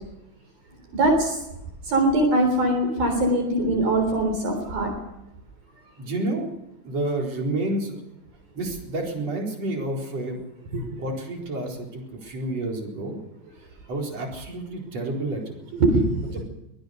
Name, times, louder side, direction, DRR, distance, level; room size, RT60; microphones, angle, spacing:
voice 1, 0.9-1.4 1.8-4.9 10.7-10.9 15.7-16.4, right 1 dB, 50° right, 4 dB, 5.1 m, -22 dB
voice 2, 6.0-6.5 6.8-8.0 8.5-10.4 11.0-13.2 13.9-15.6, right 2 dB, 35° right, 0 dB, 5.0 m, -29 dB
23.0 x 18.0 x 6.6 m, 0.86 s
omnidirectional pair, 5.4 m